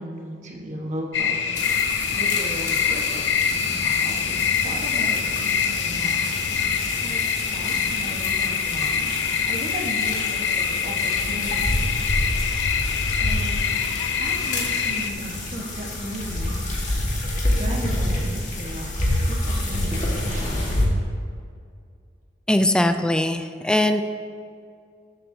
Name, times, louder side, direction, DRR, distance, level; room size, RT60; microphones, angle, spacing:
voice 1, 0.0-1.4 2.1-3.2 3.6-6.2 6.6-6.7 7.0-9.1 9.5-11.7 12.1-12.5 13.2-13.6 14.2-16.6 17.3-19.0 19.3-20.7, right 1 dB, 40° right, 0 dB, 1.2 m, -35 dB
sound 1, 1.1-15.1, left 7 dB, 75° left, 0.5 m, -25 dB
sound 2, 1.5-20.8, left 1 dB, 45° left, 1.5 m, -28 dB
voice 2, 22.5-24.0, left 1 dB, 5° left, 8 dB, 0.3 m, -20 dB
13.0 x 7.7 x 2.7 m, 2.3 s
head